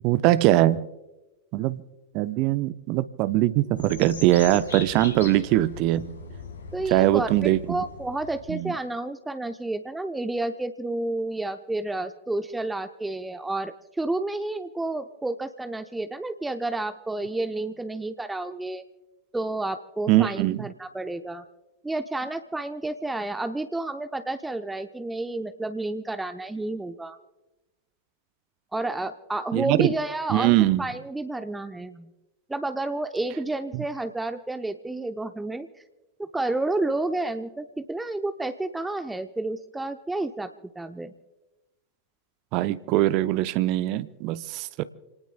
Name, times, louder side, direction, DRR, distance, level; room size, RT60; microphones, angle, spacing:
voice 1, 0.0-0.8 1.5-1.8 2.1-6.2 6.9-7.8 8.5-8.7 20.1-20.6 29.5-29.9 30.3-30.8 33.7-33.8 42.5-44.8, right 15 dB, 40° right, 0.7 m, -22 dB
sound 1, 3.8-8.7, left 4 dB, 75° left, 3.8 m, -40 dB
voice 2, 6.7-18.8 19.3-21.4 21.8-27.2 28.7-32.1 32.5-35.7 36.2-40.5 40.8-41.1, right 2 dB, 5° right, 0.7 m, -30 dB
29.5 x 19.0 x 2.2 m
figure-of-eight pair, 90°, 0 cm